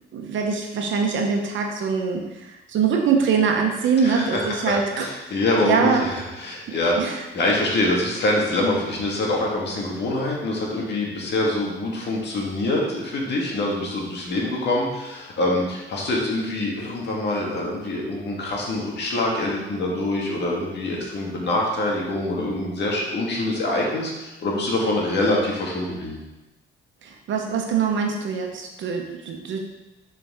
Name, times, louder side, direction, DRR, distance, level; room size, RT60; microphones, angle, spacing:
voice 1, 0.1-5.0 5.6-6.0 7.0-7.1 27.0-29.7, right 5 dB, 70° right, 2 dB, 1.1 m, -23 dB
voice 2, 4.0-4.6 4.9-26.2, left 1 dB, 60° left, -2 dB, 1.8 m, -25 dB
6.9 x 4.6 x 3.6 m, 1.0 s
cardioid pair, 90°, 20 cm